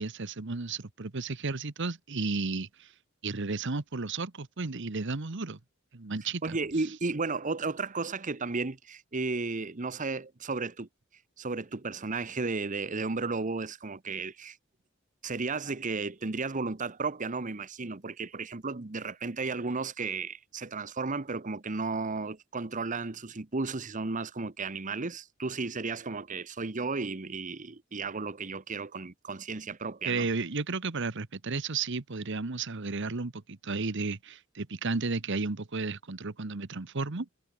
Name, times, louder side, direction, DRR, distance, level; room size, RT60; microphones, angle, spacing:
voice 1, 0.0-2.9 3.2-5.6 5.9-6.6 30.0-37.3, right 3 dB, 60° right, 1.2 m, -33 dB
voice 2, 6.4-10.9 11.4-14.6 15.2-30.3, right 3 dB, 40° right, 1.0 m, -34 dB
head